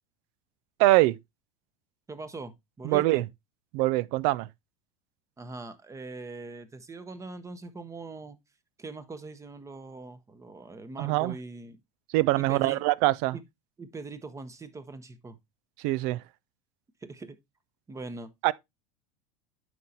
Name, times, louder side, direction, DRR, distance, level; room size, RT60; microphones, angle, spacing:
voice 1, 0.8-1.2 2.8-3.2 3.7-4.5 11.0-11.4 12.1-13.4 15.8-16.2 18.4-18.5, right 18 dB, 60° right, 0.4 m, -23 dB
voice 2, 2.1-3.2 5.4-8.4 8.8-11.8 12.4-12.9 13.3-13.4 13.8-15.4 17.0-17.4 17.9-18.3, right 3 dB, 15° right, 1.0 m, -41 dB
9.2 x 5.8 x 2.7 m
hypercardioid pair, 100°, 17 cm